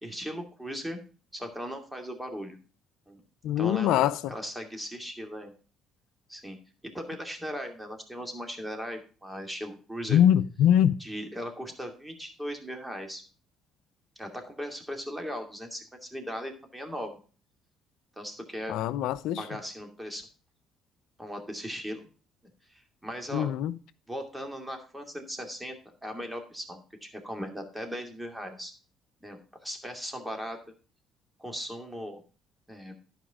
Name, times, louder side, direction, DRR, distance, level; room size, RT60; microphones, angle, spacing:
voice 1, 0.0-1.0 1.3-2.6 3.1-3.2 3.6-5.5 6.3-6.6 6.8-10.2 11.0-13.2 14.2-17.2 18.2-18.8 19.4-20.3 21.2-22.1 22.7-23.5 24.1-25.8 26.0-28.7 29.2-30.6 31.4-32.2 32.7-32.9, equal, 10° right, 2.5 m, -38 dB
voice 2, 3.4-4.2 10.1-10.9 18.7-19.4 23.3-23.7, left 10 dB, 80° left, 0.5 m, -23 dB
11.5 x 5.0 x 5.0 m
supercardioid pair, 70°, 0 cm